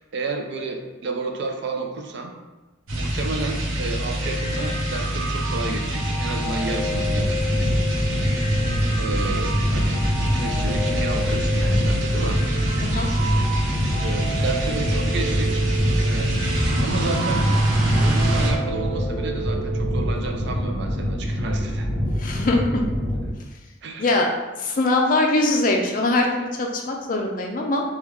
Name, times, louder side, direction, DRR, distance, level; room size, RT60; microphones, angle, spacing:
voice 1, 0.0-2.3 2.9-7.3 9.0-10.0 10.4-12.4 14.0-15.7 16.0-16.3 16.8-17.4 17.9-21.9 23.8-24.1, right 3 dB, 55° right, 3 dB, 0.4 m, -31 dB
sound 1, 2.9-18.5, right 1 dB, 80° right, 0.8 m, -25 dB
sound 2, 4.2-20.2, right 1 dB, 30° right, 0.9 m, -33 dB
sound 3, 6.9-23.3, equal, 15° left, 1.1 m, -26 dB
voice 2, 22.2-22.8 24.0-24.3 24.6-27.8, left 2 dB, 40° left, 1 dB, 0.4 m, -22 dB
3.4 x 2.3 x 3.0 m, 1.2 s
head